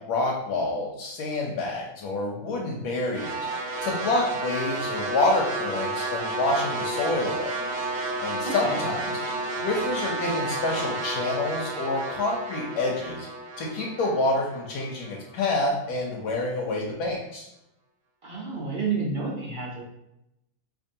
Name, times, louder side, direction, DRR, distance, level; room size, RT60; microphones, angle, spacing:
voice 1, 0.1-3.5 3.8-7.5 8.2-9.2 9.6-13.3 13.6-17.5, left 2 dB, 85° left, -2 dB, 1.2 m, -27 dB
sound 1, 3.1-15.4, right 2 dB, 80° right, 1.2 m, -31 dB
voice 2, 8.4-8.8 18.2-19.8, right 4 dB, 50° right, -3 dB, 0.6 m, -30 dB
4.5 x 2.5 x 2.7 m, 0.83 s
omnidirectional pair, 1.6 m